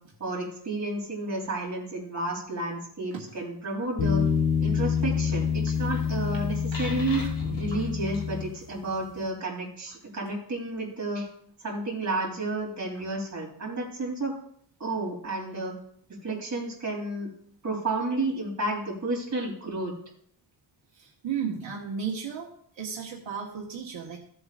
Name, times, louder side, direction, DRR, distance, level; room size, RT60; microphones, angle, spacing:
voice 1, 0.2-4.2 4.6-7.2 7.6-11.3 11.6-14.3 14.8-15.8 16.1-17.3 17.6-19.9, right 2 dB, 40° right, -2 dB, 3.7 m, -31 dB
sound 1, 4.0-8.9, left 6 dB, 65° left, 4.0 m, -27 dB
voice 2, 6.7-7.3 20.9-24.2, right 7 dB, 80° right, -2 dB, 1.6 m, -35 dB
15.5 x 7.8 x 2.5 m, 0.62 s
wide cardioid pair, 150°, 45 cm